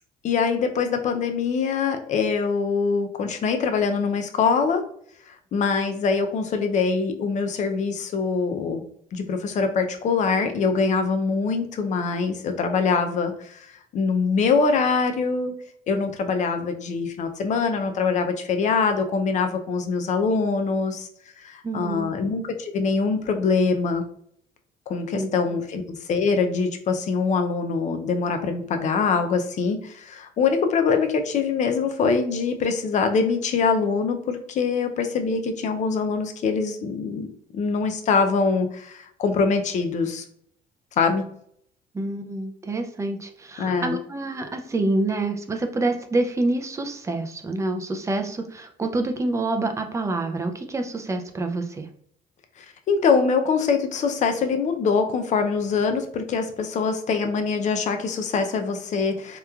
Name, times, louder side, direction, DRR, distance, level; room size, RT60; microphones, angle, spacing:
voice 1, 0.2-4.8 5.3-8.8 9.1-13.7 13.9-15.5 15.9-21.1 21.4-24.0 24.9-40.2 41.0-41.3 43.6-44.0 52.6-59.4, left 5 dB, 45° left, 6 dB, 0.4 m, -24 dB
voice 2, 21.6-22.1 25.1-25.6 41.9-51.9, right 2 dB, 15° right, 5 dB, 0.4 m, -27 dB
2.9 x 2.2 x 2.2 m, 0.64 s
cardioid pair, 110°, 17 cm